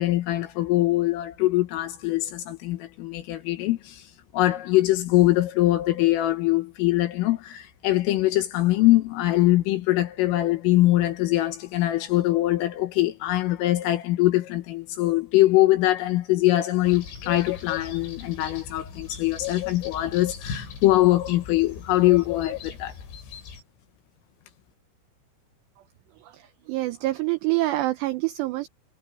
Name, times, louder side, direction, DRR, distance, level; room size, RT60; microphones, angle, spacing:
voice 1, 0.0-4.1 4.3-22.9, left 16 dB, 80° left, 4.1 m, -22 dB
sound 1, 16.8-23.6, left 9 dB, 65° left, 7.5 m, -37 dB
voice 2, 26.2-28.7, right 18 dB, 85° right, 2.4 m, -26 dB
omnidirectional pair, 5.9 m